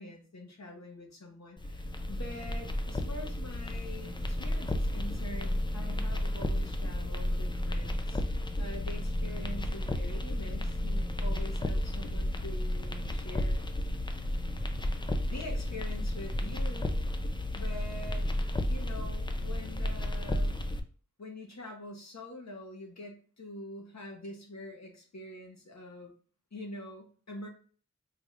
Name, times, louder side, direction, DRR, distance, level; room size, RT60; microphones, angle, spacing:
voice 1, 0.0-8.2 8.6-13.6 15.2-17.0 17.5-18.3 18.7-20.6 21.2-26.1 26.5-27.5, left 1 dB, 65° left, 1 dB, 1.0 m, -45 dB
sound 1, 1.6-20.8, left 1 dB, 15° left, 0.4 m, -32 dB
3.7 x 2.4 x 3.2 m, 0.42 s
wide cardioid pair, 55°, 30 cm